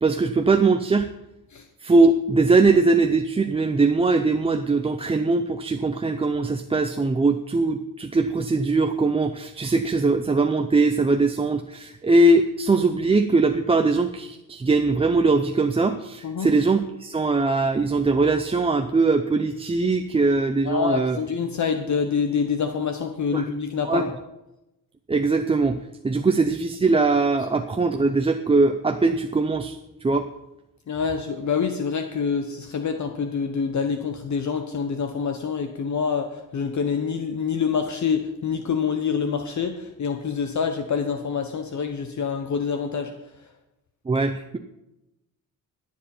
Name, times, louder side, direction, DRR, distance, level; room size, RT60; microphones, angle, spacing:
voice 1, 0.0-1.1 1.8-21.2 23.3-23.4 23.8-24.0 25.1-25.8 26.0-29.8 30.0-30.3 44.1-44.6, right 3 dB, 15° right, 6 dB, 0.5 m, -21 dB
voice 2, 20.6-24.1 30.9-43.1, left 6 dB, 50° left, 6 dB, 1.0 m, -26 dB
20.5 x 7.4 x 4.3 m, 0.92 s
cardioid pair, 120°, 36 cm